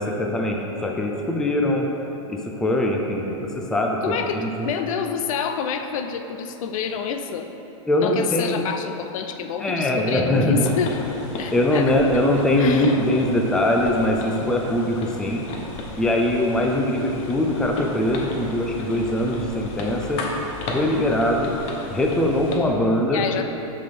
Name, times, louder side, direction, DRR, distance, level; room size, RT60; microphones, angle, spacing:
voice 1, 0.0-1.9 2.3-4.7 7.9-8.7 9.6-10.7 11.5-15.4 16.0-20.2 20.7-21.5 21.9-23.2, left 1 dB, 5° left, 0 dB, 0.4 m, -22 dB
voice 2, 4.0-7.5 8.0-11.8 12.6-13.0 23.1-23.4, left 7 dB, 70° left, 7 dB, 0.5 m, -28 dB
sound 1, 10.5-22.6, left 2 dB, 35° left, 0.8 m, -34 dB
6.6 x 5.5 x 3.4 m, 3.0 s
supercardioid pair, 140°, 18 cm